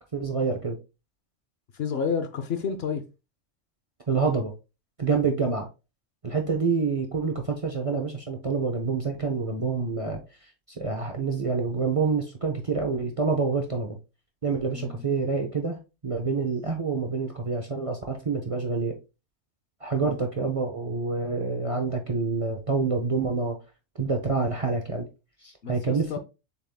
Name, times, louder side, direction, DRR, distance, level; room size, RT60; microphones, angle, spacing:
voice 1, 0.1-0.8 4.1-4.5 5.0-5.7 6.2-14.0 14.4-18.9 19.8-23.6 24.0-25.1 25.4-26.2, right 4 dB, 35° right, 0.6 m, -27 dB
voice 2, 1.7-3.0 14.7-15.1 20.0-20.2 25.6-26.2, left 6 dB, 60° left, 0.8 m, -30 dB
6.8 x 3.5 x 2.2 m
omnidirectional pair, 1.3 m